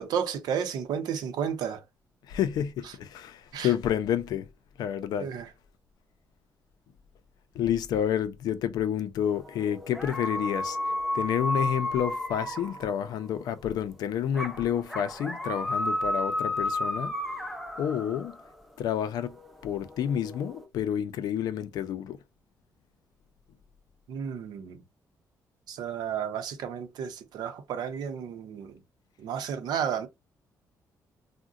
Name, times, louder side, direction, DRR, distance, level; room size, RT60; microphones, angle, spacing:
voice 1, 0.0-1.8 3.5-3.7 5.2-5.5 24.1-24.8 25.7-28.8 29.2-30.1, right 8 dB, 80° right, 0.6 m, -32 dB
voice 2, 2.3-4.5 4.8-5.3 7.5-10.8 11.1-17.1 17.8-18.4 18.8-19.3 19.6-22.2, left 9 dB, 75° left, 0.4 m, -29 dB
sound 1, 9.2-13.3 14.3-18.6 19.1-20.7, left 1 dB, ahead, 0.4 m, -33 dB
3.7 x 2.1 x 2.3 m
cardioid pair, 160°, 7 cm